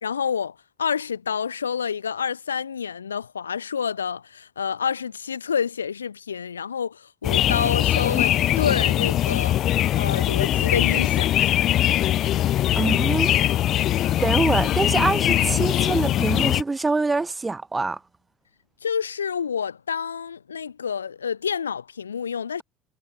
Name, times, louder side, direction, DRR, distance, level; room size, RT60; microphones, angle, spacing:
voice 1, 0.0-9.6 10.0-11.5 18.8-22.6, left 7 dB, 80° left, 3.5 m, -28 dB
sound 1, 7.2-16.6, left 12 dB, 50° left, 0.7 m, -21 dB
voice 2, 12.7-13.4 14.2-18.0, right 3 dB, 20° right, 4.9 m, -24 dB
figure-of-eight pair, 60°, 0 cm